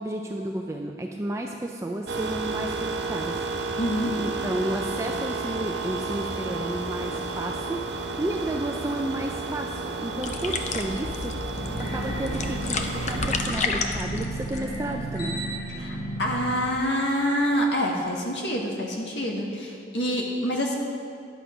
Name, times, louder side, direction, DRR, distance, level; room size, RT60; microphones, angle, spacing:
voice 1, 0.0-3.4 4.2-11.3 11.8-15.4, right 1 dB, 15° right, 2 dB, 0.4 m, -32 dB
sound 1, 2.1-13.4, right 3 dB, 80° right, 0.8 m, -32 dB
voice 2, 3.8-4.2 15.8-20.8, equal, 85° left, -1 dB, 1.6 m, -26 dB
sound 2, 10.2-15.2, left 4 dB, 40° left, 0.6 m, -32 dB
sound 3, 11.6-18.1, right 1 dB, 70° left, 2.9 m, -34 dB
10.5 x 8.0 x 5.1 m, 2.4 s
head